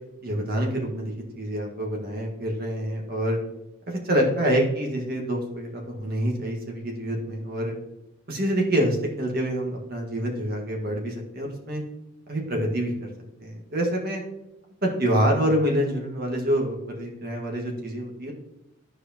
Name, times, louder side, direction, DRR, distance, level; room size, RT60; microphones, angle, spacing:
voice 1, 0.2-3.4 3.9-7.7 8.3-11.8 12.3-12.9 13.4-14.2 14.8-18.3, equal, 45° right, 0 dB, 1.8 m, -26 dB
14.0 x 4.8 x 3.0 m, 0.89 s
head